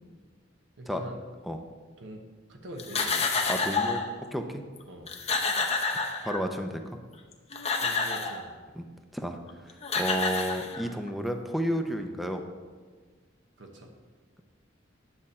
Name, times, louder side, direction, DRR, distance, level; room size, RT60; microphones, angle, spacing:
voice 1, 0.8-1.2 2.0-2.2 2.5-3.2 4.9-5.1 7.8-8.5 13.6-13.9, right 1 dB, 70° right, 2 dB, 1.1 m, -43 dB
sound 1, 2.8-4.1 4.8-4.9 5.1-6.6 7.3-8.4 9.5-9.6 9.8-11.1, left 4 dB, 35° left, 0.8 m, -29 dB
voice 2, 3.5-4.6 6.2-6.8 8.8-8.9 9.1-9.4 9.6-12.4, equal, ahead, 5 dB, 0.6 m, -31 dB
9.8 x 7.0 x 4.3 m, 1.5 s
head